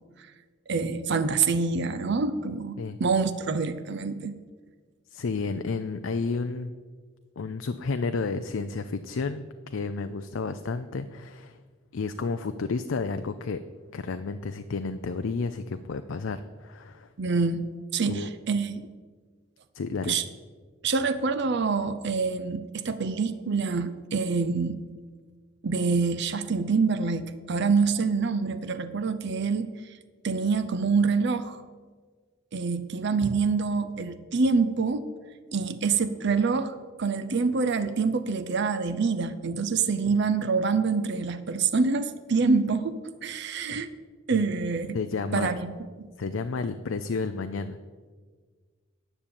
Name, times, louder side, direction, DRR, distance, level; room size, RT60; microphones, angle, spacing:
voice 1, 0.7-4.4 17.2-18.9 20.1-20.2 20.8-24.8 25.6-30.0 30.2-31.6 32.5-35.0 35.5-43.9 44.3-45.0 45.3-45.7 46.0-46.1, right 4 dB, 55° right, 10 dB, 0.6 m, -26 dB
voice 2, 5.1-6.7 7.4-11.6 11.9-13.6 13.9-17.1 18.0-18.3 19.7-20.2 44.3-44.5 44.9-45.5 46.2-47.8, left 4 dB, 65° left, 10 dB, 0.5 m, -31 dB
9.9 x 6.8 x 8.7 m, 1.5 s
head